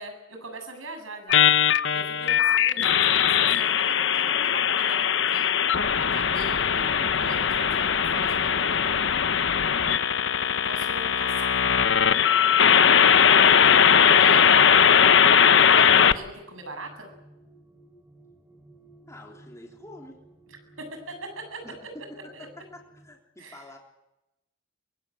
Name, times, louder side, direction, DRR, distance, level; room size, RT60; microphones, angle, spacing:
voice 1, 0.0-1.4 1.9-5.5 6.0-8.9 10.6-11.6 14.2-14.5 15.6-17.1 20.8-21.6 22.3-22.5 23.4-23.6, right 2 dB, 90° right, 5 dB, 7.8 m, -41 dB
sound 1, 1.3-16.1, left 8 dB, 65° left, 0.9 m, -20 dB
sound 2, 10.4-23.1, right 1 dB, 10° right, 3.0 m, -52 dB
voice 2, 12.9-15.3 19.1-20.2 21.6-21.8 22.4-23.8, left 1 dB, 15° left, -1 dB, 3.6 m, -48 dB
24.0 x 22.5 x 8.8 m, 0.94 s
head